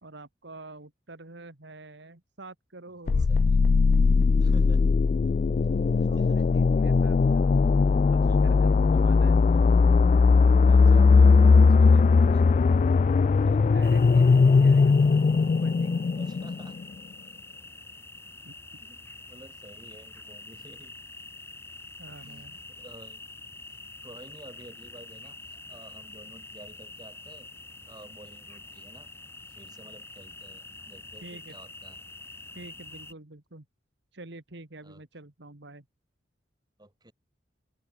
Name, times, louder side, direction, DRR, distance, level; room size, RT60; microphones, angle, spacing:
voice 1, 0.0-3.3 6.0-7.6 8.0-9.4 13.6-15.2 15.6-16.0 18.4-18.5 22.0-22.6 31.2-31.6 32.5-33.7 34.1-35.9, right 2 dB, 70° right, 2.1 m, -46 dB
sound 1, 3.1-16.8, left 4 dB, 40° left, 0.3 m, -19 dB
voice 2, 3.1-3.6 4.4-4.9 6.0-6.6 7.6-7.7 8.0-8.4 8.9-9.0 9.6-9.7 10.7-12.6 13.3-13.8 16.2-16.8 18.8-20.9 22.2-23.2 24.0-25.4 25.7-27.5 27.9-29.1 29.5-32.0 34.8-35.0 36.8-37.1, right 1 dB, 20° right, 4.9 m, -51 dB
sound 2, 13.8-33.1, left 2 dB, 15° left, 4.5 m, -46 dB
open air
head